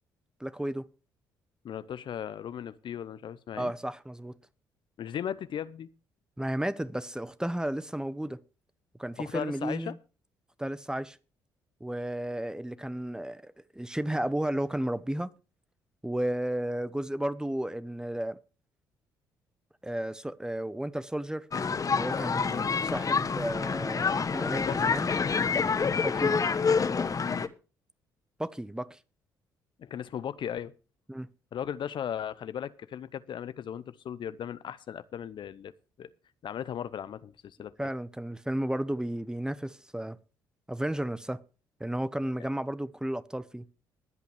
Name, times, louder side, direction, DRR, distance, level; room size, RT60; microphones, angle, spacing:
voice 1, 0.4-0.8 3.5-4.3 6.4-8.4 9.0-10.0 10.6-11.2 11.8-15.3 16.0-18.4 19.8-21.5 21.8-25.1 26.0-26.3 28.4-29.0 31.1-31.3 37.8-40.2 40.7-41.4 41.8-43.6, right 1 dB, 5° right, 0.9 m, -33 dB
voice 2, 1.6-3.7 5.0-5.9 9.2-9.9 22.5-22.7 24.6-25.0 27.2-27.5 29.8-30.7 31.5-35.7 36.0-36.1 36.4-37.7, left 9 dB, 55° left, 0.7 m, -37 dB
sound 1, 21.5-27.5, left 5 dB, 35° left, 1.0 m, -27 dB
22.0 x 8.3 x 3.4 m
hypercardioid pair, 50°, 10 cm